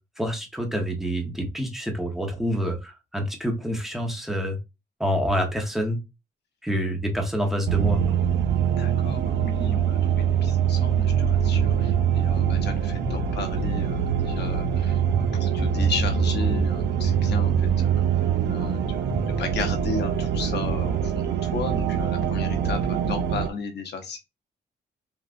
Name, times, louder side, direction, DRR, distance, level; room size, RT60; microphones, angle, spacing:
voice 1, 0.2-4.6 5.0-6.0 6.6-8.0, equal, ahead, 2 dB, 0.9 m, -27 dB
sound 1, 7.6-23.5, right 8 dB, 75° right, 0.4 m, -24 dB
voice 2, 8.7-15.0 15.3-17.9 18.5-24.2, left 5 dB, 65° left, 5 dB, 0.9 m, -35 dB
sound 2, 13.0-14.7 15.0-16.8 17.0-19.4, equal, 45° right, 1.8 m, -30 dB
3.5 x 2.4 x 2.4 m, 0.25 s
cardioid pair, 100°, 18 cm